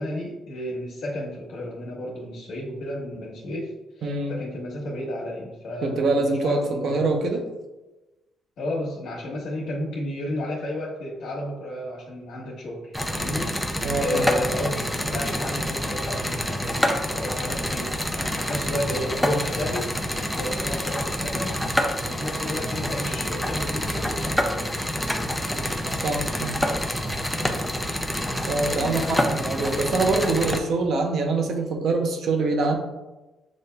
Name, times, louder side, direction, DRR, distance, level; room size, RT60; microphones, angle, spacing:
voice 1, 0.0-7.1 8.6-13.6 14.0-19.9 20.3-21.6 22.1-24.7 28.6-29.4, left 1 dB, 70° left, -4 dB, 1.0 m, -32 dB
voice 2, 4.0-4.4 5.8-7.4 13.8-14.3 26.0-26.6 28.5-32.8, right 3 dB, 65° right, 3 dB, 0.7 m, -24 dB
sound 1, 12.9-30.6, left 1 dB, 5° left, 0.5 m, -27 dB
7.2 x 2.5 x 2.2 m, 1.1 s
cardioid pair, 90°, 0 cm